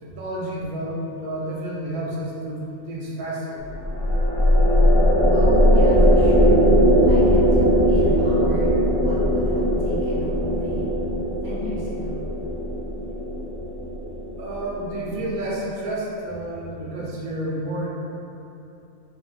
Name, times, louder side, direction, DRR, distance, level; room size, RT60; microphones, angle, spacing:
voice 1, 0.0-3.6 14.4-17.9, right 1 dB, 85° right, -3 dB, 1.1 m, -30 dB
sound 1, 3.6-15.1, equal, 45° left, 0.5 m, -19 dB
voice 2, 5.3-6.7 7.0-10.9 11.4-12.2, right 1 dB, 30° right, -9 dB, 0.4 m, -35 dB
4.1 x 2.1 x 2.4 m, 2.9 s
omnidirectional pair, 1.5 m